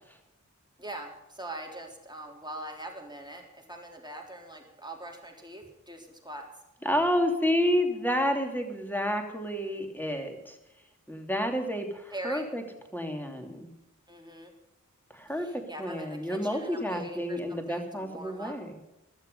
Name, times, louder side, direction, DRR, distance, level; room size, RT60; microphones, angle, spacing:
voice 1, 0.8-6.5 12.1-12.5 14.1-14.5 15.3-18.5, right 1 dB, 15° right, 1 dB, 3.8 m, -42 dB
voice 2, 6.8-10.6 11.1-12.6 12.9-13.7 15.1-18.7, equal, 5° left, 3 dB, 2.9 m, -30 dB
15.5 x 12.5 x 5.5 m, 0.95 s
wide cardioid pair, 50°, 31 cm